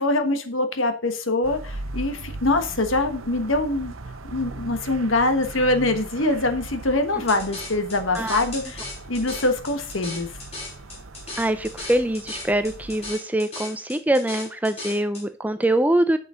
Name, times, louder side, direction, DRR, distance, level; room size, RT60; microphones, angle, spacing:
voice 1, 0.0-3.9 4.3-10.4, left 2 dB, 70° left, 1.3 m, -24 dB
sound 1, 1.4-13.1, right 2 dB, 75° right, 0.9 m, -39 dB
sound 2, 7.3-15.2, left 2 dB, 30° left, 3.3 m, -37 dB
voice 2, 11.4-16.2, right 1 dB, 10° right, 0.4 m, -23 dB
8.6 x 6.2 x 3.9 m
head